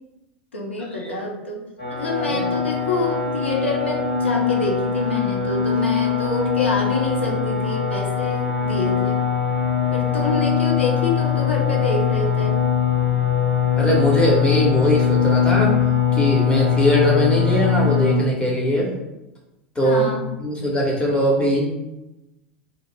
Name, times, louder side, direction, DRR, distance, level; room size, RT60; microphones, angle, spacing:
voice 1, 0.5-1.6 1.9-9.2 9.9-12.6 19.8-20.2, left 2 dB, 85° left, -1 dB, 0.6 m, -26 dB
sound 1, 1.8-18.1, left 8 dB, 65° left, 1.4 m, -21 dB
voice 2, 13.8-15.8 16.1-18.9 19.7-20.0 20.4-21.6, equal, 15° left, -3 dB, 1.0 m, -20 dB
2.3 x 2.1 x 3.3 m, 0.97 s
figure-of-eight pair, 85°, 6 cm